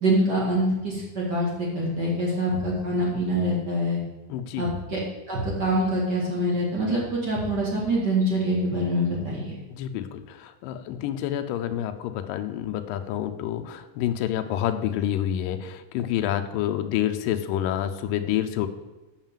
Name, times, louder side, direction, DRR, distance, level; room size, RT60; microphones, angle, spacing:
voice 1, 0.0-4.0 4.6-5.0 5.3-9.5, right 1 dB, 35° right, -4 dB, 1.8 m, -25 dB
voice 2, 4.3-4.6 9.7-18.7, left 11 dB, 80° left, 7 dB, 2.1 m, -28 dB
7.4 x 5.7 x 7.3 m, 1.1 s
omnidirectional pair, 4.4 m